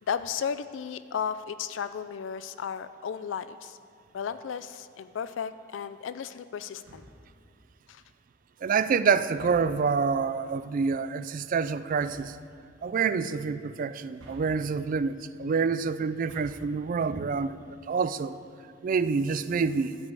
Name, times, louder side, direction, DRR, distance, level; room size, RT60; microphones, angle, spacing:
voice 1, 0.0-3.8 4.1-7.0 7.9-8.0, left 7 dB, 70° left, 13 dB, 0.4 m, -34 dB
sound 1, 6.8-7.4 9.3-9.9 11.9-12.4 14.1-14.9 16.1-16.8, right 1 dB, 80° right, 1.5 m, -50 dB
voice 2, 8.6-12.4 12.8-17.6 17.9-18.4 18.8-20.0, right 5 dB, 45° right, 14 dB, 0.3 m, -27 dB
12.5 x 5.1 x 8.2 m, 2.3 s
head